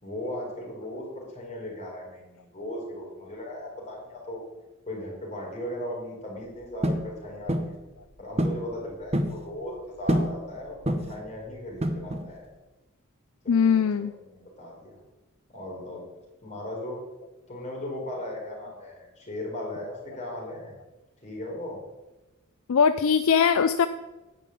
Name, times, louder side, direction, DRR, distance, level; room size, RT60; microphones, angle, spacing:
voice 1, 0.0-4.4 4.9-7.7 8.2-12.4 13.4-15.0 15.5-16.0 16.4-17.0 17.5-20.8 21.2-21.8, left 1 dB, 30° left, -2 dB, 4.0 m, -37 dB
sound 1, 6.8-7.1 7.5-7.8 8.4-8.6 8.9-9.4 10.1-10.4 10.8-11.2 11.8-12.3, right 1 dB, 30° right, 0.9 m, -26 dB
voice 2, 13.5-14.1 22.7-23.9, left 6 dB, 65° left, 11 dB, 0.4 m, -21 dB
10.5 x 5.4 x 8.4 m, 1.1 s
head